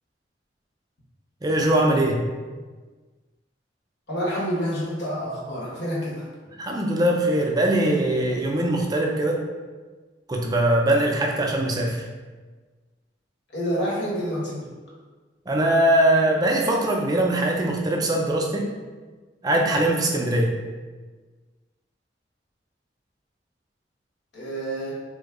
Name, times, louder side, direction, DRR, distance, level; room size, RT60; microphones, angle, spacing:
voice 1, 1.4-2.2 6.6-9.4 10.3-12.1 15.5-18.7 19.4-20.5, right 1 dB, 20° right, 1 dB, 0.3 m, -21 dB
voice 2, 4.1-6.2 13.5-14.7 24.3-24.9, equal, 75° left, -5 dB, 1.1 m, -28 dB
3.4 x 2.0 x 3.5 m, 1.4 s
head